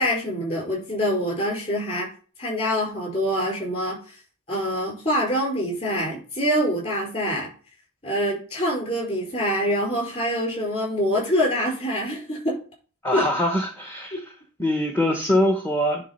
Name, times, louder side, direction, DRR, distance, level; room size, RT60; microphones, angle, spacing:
voice 1, 0.0-2.1 2.4-4.1 4.5-7.5 8.0-12.6 13.1-13.2, equal, 30° left, -2 dB, 4.8 m, -25 dB
voice 2, 13.0-14.3 14.6-16.0, left 1 dB, 10° left, 3 dB, 0.9 m, -23 dB
10.0 x 3.6 x 5.4 m, 0.39 s
head